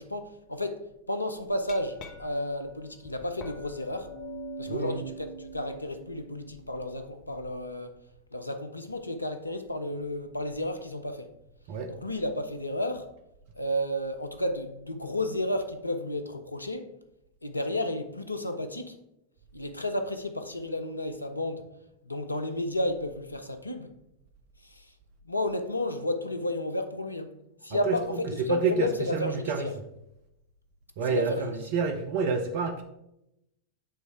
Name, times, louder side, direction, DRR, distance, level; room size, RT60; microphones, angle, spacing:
voice 1, 0.0-4.1 4.6-7.9 8.3-11.3 11.9-13.1 13.6-16.9 17.4-19.0 19.5-21.7 22.0-23.9 24.6-24.9 25.2-27.3 27.6-29.8 31.1-31.5, left 1 dB, 85° left, 0.5 m, -32 dB
Glass, 1.4-7.5, right 1 dB, 40° left, 0.9 m, -44 dB
voice 2, 28.5-29.7 31.0-32.8, right 4 dB, 50° right, 0.6 m, -28 dB
7.7 x 3.2 x 4.7 m
figure-of-eight pair, 90°, 0 cm